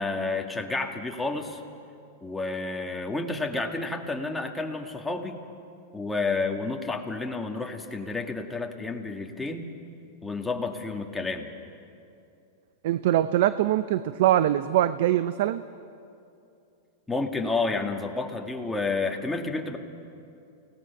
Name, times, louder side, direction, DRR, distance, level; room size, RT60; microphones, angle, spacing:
voice 1, 0.0-1.6 2.2-5.4 5.9-9.7 10.2-11.5 17.1-19.8, left 3 dB, 5° left, 2 dB, 1.9 m, -30 dB
voice 2, 12.8-15.6, right 12 dB, 65° right, 13 dB, 0.6 m, -23 dB
29.5 x 18.5 x 6.0 m, 2.6 s
hypercardioid pair, 130°, 0 cm